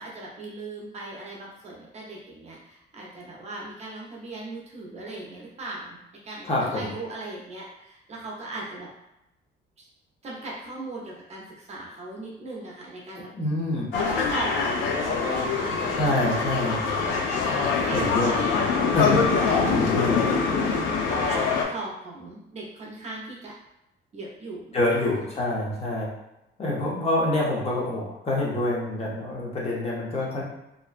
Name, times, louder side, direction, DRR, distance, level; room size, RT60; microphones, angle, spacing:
voice 1, 0.0-8.9 9.8-9.9 10.2-13.3 14.0-16.3 17.8-23.5 24.1-25.0, right 2 dB, 35° right, -3 dB, 0.5 m, -38 dB
voice 2, 6.5-6.9 13.3-13.9 16.0-16.8 17.9-18.4 18.9-20.2 24.7-26.1 26.6-30.4, left 1 dB, 35° left, -5 dB, 0.7 m, -26 dB
sound 1, 13.9-21.6, left 4 dB, 90° left, 0.4 m, -24 dB
2.5 x 2.1 x 2.4 m, 0.89 s
cardioid pair, 140°, 19 cm